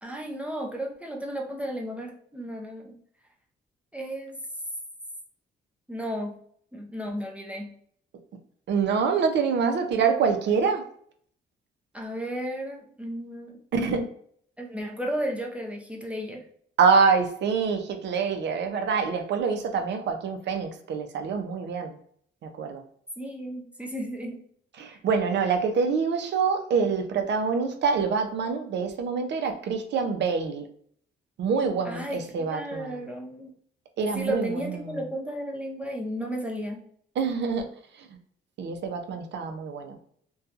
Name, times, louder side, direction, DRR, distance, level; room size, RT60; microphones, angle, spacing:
voice 1, 0.0-3.0 3.9-4.3 5.9-6.4 6.7-7.7 11.9-13.6 14.6-16.4 23.2-24.4 24.9-25.0 31.8-32.2 32.5-33.5 34.1-36.9, equal, 5° right, 0 dB, 0.5 m, -34 dB
voice 2, 8.7-10.8 13.7-14.1 16.8-22.0 22.4-22.8 24.8-30.7 31.4-33.0 34.0-35.0 37.2-37.7 38.0-38.1 38.6-40.0, right 5 dB, 65° right, 5 dB, 0.6 m, -26 dB
2.7 x 2.3 x 2.4 m, 0.62 s
cardioid pair, 90°, 20 cm